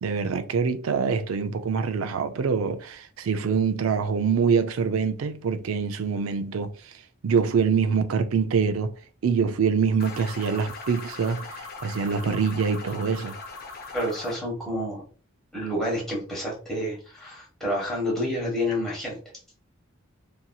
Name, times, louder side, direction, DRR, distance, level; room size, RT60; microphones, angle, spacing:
voice 1, 0.0-6.7 7.2-9.0 9.2-13.4, right 6 dB, 80° right, 0.4 m, -25 dB
sound 1, 10.0-14.4, left 4 dB, 45° left, 0.6 m, -40 dB
voice 2, 13.9-15.0 15.5-19.2, left 1 dB, ahead, 1.2 m, -29 dB
2.8 x 2.7 x 2.2 m
head